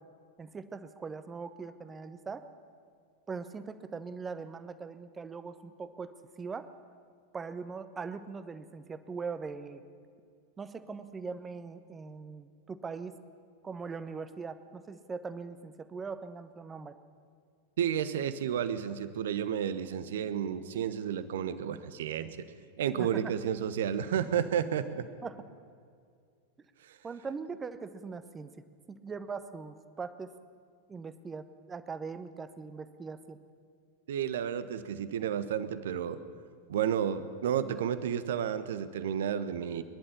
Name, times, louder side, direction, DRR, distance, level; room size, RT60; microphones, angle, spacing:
voice 1, 0.4-2.5 3.3-6.7 7.3-9.8 10.6-13.1 13.6-17.0 23.0-23.3 25.2-25.4 27.0-28.5 28.9-30.3 30.9-33.4, right 5 dB, 15° right, 12 dB, 1.2 m, -41 dB
voice 2, 17.8-22.5 22.8-25.1 26.8-27.0 34.1-36.2 36.7-39.8, right 9 dB, 60° right, 13 dB, 1.1 m, -31 dB
23.5 x 11.5 x 10.0 m, 2.2 s
figure-of-eight pair, 90°, 0 cm